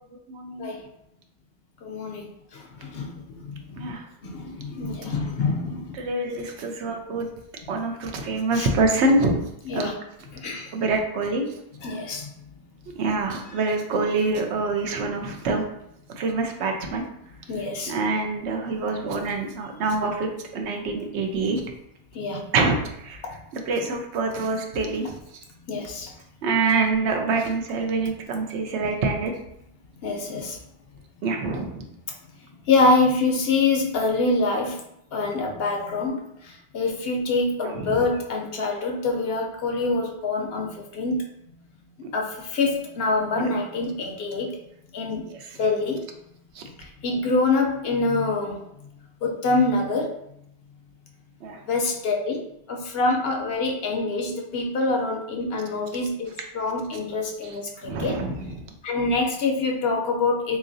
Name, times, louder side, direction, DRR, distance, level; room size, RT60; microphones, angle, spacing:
voice 1, 0.3-0.7 3.8-4.0 5.9-7.3 7.7-9.4 9.7-9.9 10.7-11.4 12.9-15.6 16.2-17.0 17.9-21.6 22.5-23.2 23.5-25.1 26.4-29.3 31.2-31.8 37.6-38.1 43.3-43.5 45.4-45.6 46.5-46.6 51.4-51.6 57.4-57.5 57.8-58.6, right 3 dB, 80° right, 3 dB, 0.9 m, -25 dB
voice 2, 1.8-3.9 4.2-6.0 8.5-8.7 9.7-9.9 10.3-10.7 11.8-12.3 17.5-17.9 22.1-22.5 23.2-23.4 25.7-26.1 30.0-30.6 32.7-34.8 35.1-41.2 42.1-44.6 44.9-45.3 45.6-46.1 46.8-48.6 49.2-50.2 51.7-58.2 58.8-60.6, left 3 dB, 65° left, 1 dB, 0.8 m, -25 dB
3.7 x 3.0 x 2.6 m, 0.77 s
omnidirectional pair, 1.1 m